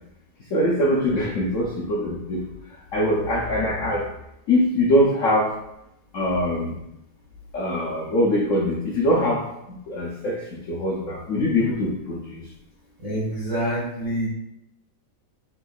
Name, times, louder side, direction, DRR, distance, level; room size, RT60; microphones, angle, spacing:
voice 1, 0.5-2.4 2.9-4.0 4.5-5.5 6.1-6.8 7.5-9.4 9.9-10.4 10.7-12.4, left 1 dB, 80° left, -3 dB, 0.7 m, -22 dB
voice 2, 13.0-14.3, right 1 dB, 45° right, -6 dB, 0.5 m, -26 dB
5.4 x 3.5 x 2.3 m, 0.84 s
omnidirectional pair, 2.2 m